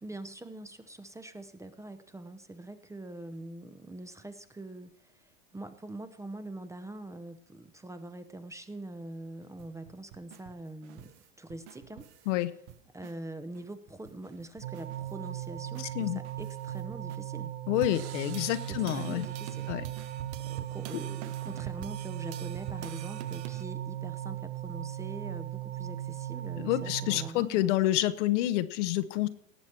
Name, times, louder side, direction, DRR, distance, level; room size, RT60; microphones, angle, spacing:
voice 1, 0.0-12.1 12.9-17.5 18.7-27.7, right 2 dB, 10° right, 10 dB, 0.8 m, -44 dB
sound 1, 9.4-12.3 12.7-13.2 13.5-13.6 13.9-17.2 17.8-23.7, right 11 dB, 55° right, 1.1 m, -46 dB
sound 2, 14.6-27.3, right 12 dB, 90° right, 1.6 m, -38 dB
voice 2, 17.7-19.2 19.7-19.8 26.6-29.3, left 14 dB, 65° left, 12 dB, 1.0 m, -28 dB
18.0 x 7.2 x 4.5 m, 0.73 s
hypercardioid pair, 110°, 40 cm